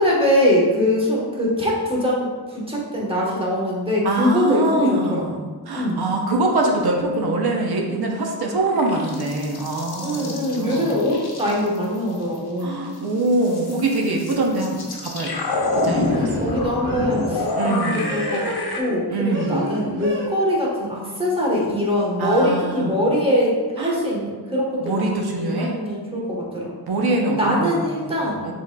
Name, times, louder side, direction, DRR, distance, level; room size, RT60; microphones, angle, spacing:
voice 1, 0.0-5.4 5.7-6.0 10.0-12.8 16.0-18.5 18.7-26.7 27.4-28.5, left 1 dB, 15° right, -4 dB, 1.1 m, -22 dB
voice 2, 4.0-10.9 12.6-16.5 17.5-18.1 19.1-19.7 22.2-23.0 23.8-24.0 24.8-25.8 26.9-28.2 28.4-28.5, right 2 dB, 75° right, 0 dB, 0.7 m, -24 dB
sound 1, 8.4-12.6 12.9-18.8, left 2 dB, 75° left, 0.8 m, -27 dB
sound 2, 14.3-14.6 16.1-17.2 18.0-19.0 19.3-20.3, equal, 55° right, 1.2 m, -32 dB
6.0 x 3.6 x 2.2 m, 1.4 s
wide cardioid pair, 135°, 38 cm